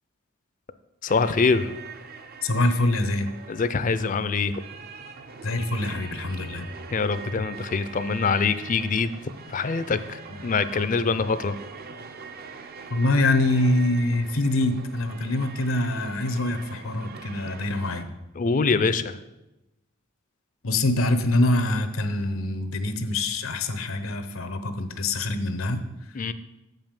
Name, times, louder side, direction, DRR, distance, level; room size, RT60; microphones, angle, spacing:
voice 1, 1.0-1.7 3.5-4.5 6.9-9.1 9.5-11.6 18.4-19.2 26.1-26.3, left 4 dB, 40° left, 13 dB, 0.4 m, -24 dB
sound 1, 1.1-18.0, right 5 dB, 50° right, 0.6 m, -42 dB
voice 2, 2.4-3.3 5.4-6.7 12.9-18.1 20.6-25.8, left 2 dB, 85° left, 10 dB, 0.9 m, -24 dB
7.6 x 5.4 x 7.4 m, 0.96 s
head